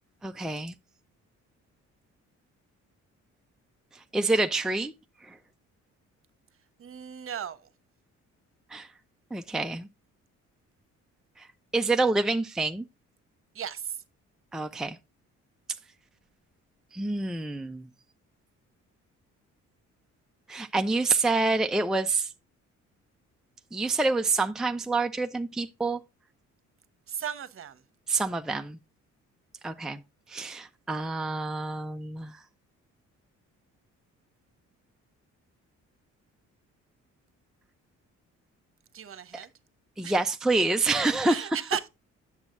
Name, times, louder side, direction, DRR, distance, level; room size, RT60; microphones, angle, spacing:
voice 1, 0.2-0.7 4.1-4.9 5.2-5.4 8.7-8.9 9.3-9.9 11.4-11.5 11.7-12.9 14.5-15.0 16.9-17.9 20.5-22.3 23.7-26.0 28.1-28.8 29.6-30.0 30.3-32.3 40.0-41.6, right 3 dB, ahead, 0.6 m, -27 dB
voice 2, 6.8-7.6 13.5-14.0 27.1-27.8 38.9-39.5 40.0-40.1 41.2-41.9, right 9 dB, 45° right, 1.1 m, -35 dB
8.8 x 7.2 x 2.6 m
cardioid pair, 90°, 30 cm